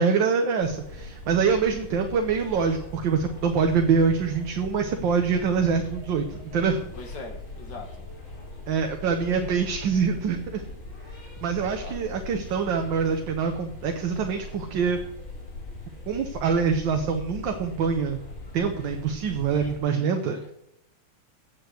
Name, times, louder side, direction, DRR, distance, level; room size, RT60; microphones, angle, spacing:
voice 1, 0.0-6.9 8.7-10.6 11.4-15.0 16.1-18.2 18.5-20.5, right 6 dB, 65° right, 5 dB, 1.6 m, -25 dB
sound 1, 0.6-19.8, left 2 dB, 75° left, 4.1 m, -41 dB
voice 2, 6.9-8.1 11.6-12.0 19.5-20.5, left 3 dB, 55° left, 5 dB, 2.1 m, -42 dB
8.3 x 8.1 x 8.1 m, 0.81 s
omnidirectional pair, 2.3 m